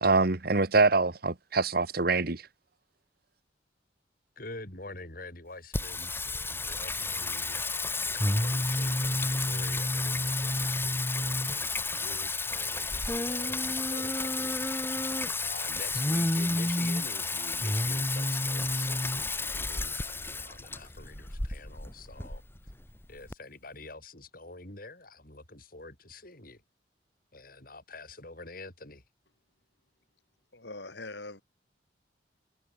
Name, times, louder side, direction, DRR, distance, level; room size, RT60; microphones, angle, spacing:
voice 1, 0.0-2.4, right 3 dB, 55° right, 1.4 m, -24 dB
voice 2, 4.4-14.7 15.4-22.4 23.1-26.6 27.3-29.0, left 2 dB, 50° left, 7.3 m, -47 dB
Singing, 5.7-23.3, left 2 dB, 15° left, 1.8 m, -30 dB
voice 3, 30.5-31.4, left 2 dB, 70° left, 5.1 m, -42 dB
head